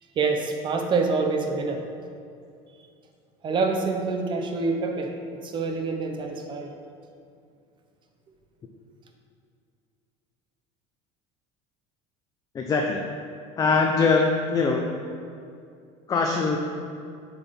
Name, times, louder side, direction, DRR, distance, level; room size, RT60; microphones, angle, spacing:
voice 1, 0.2-1.9 3.4-6.7, right 4 dB, 35° right, 4 dB, 0.8 m, -26 dB
voice 2, 12.5-13.0 13.6-14.8 16.1-16.6, left 4 dB, 25° left, 1 dB, 0.5 m, -22 dB
6.9 x 4.0 x 5.3 m, 2.4 s
cardioid pair, 130°, 14 cm